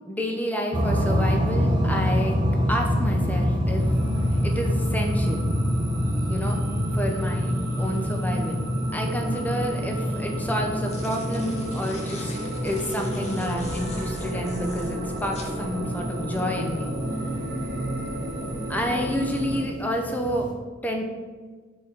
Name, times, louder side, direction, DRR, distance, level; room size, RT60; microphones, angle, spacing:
voice 1, 0.0-2.4 2.7-3.8 4.4-5.5 6.3-6.6 6.9-12.3 12.6-17.0 18.7-20.5 20.8-21.1, equal, 10° left, 2 dB, 0.6 m, -29 dB
sound 1, 0.7-20.5, equal, 20° right, 0.8 m, -27 dB
sound 2, 3.8-19.7, right 1 dB, 45° right, 1.2 m, -33 dB
sound 3, 10.8-15.5, left 3 dB, 30° left, 0.9 m, -44 dB
4.6 x 4.5 x 5.8 m, 1.5 s
head